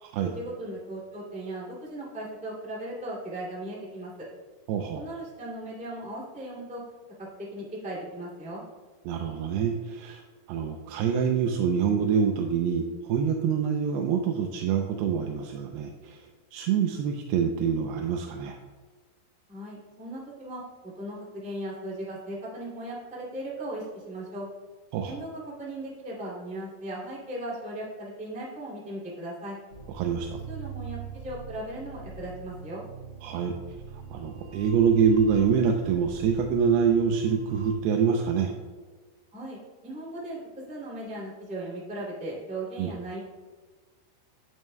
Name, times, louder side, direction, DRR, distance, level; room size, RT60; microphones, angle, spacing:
voice 1, 0.2-4.3 4.9-6.8 7.2-8.6 19.5-24.5 25.0-29.6 30.5-32.8 39.3-43.2, right 1 dB, 5° right, -6 dB, 1.0 m, -37 dB
voice 2, 4.7-5.0 9.1-10.2 10.5-18.6 24.9-25.2 29.9-30.4 33.2-33.5 34.1-38.5 42.8-42.9, right 7 dB, 85° right, 3 dB, 2.6 m, -26 dB
sound 1, 29.7-37.7, right 6 dB, 35° right, 1.7 m, -42 dB
10.5 x 9.3 x 2.2 m, 1.4 s
omnidirectional pair, 4.8 m